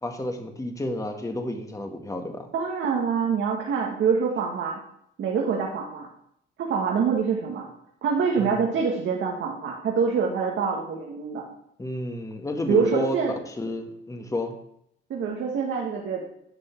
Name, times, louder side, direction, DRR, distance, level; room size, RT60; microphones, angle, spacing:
voice 1, 0.0-2.5 8.4-8.6 11.8-13.1 13.5-14.5, left 1 dB, 15° left, 4 dB, 1.5 m, -31 dB
voice 2, 2.5-4.8 5.2-6.1 6.6-7.7 8.0-11.4 12.7-13.3 15.1-16.2, right 6 dB, 70° right, -1 dB, 1.6 m, -25 dB
10.5 x 6.3 x 4.5 m, 0.75 s
cardioid pair, 90°, 20 cm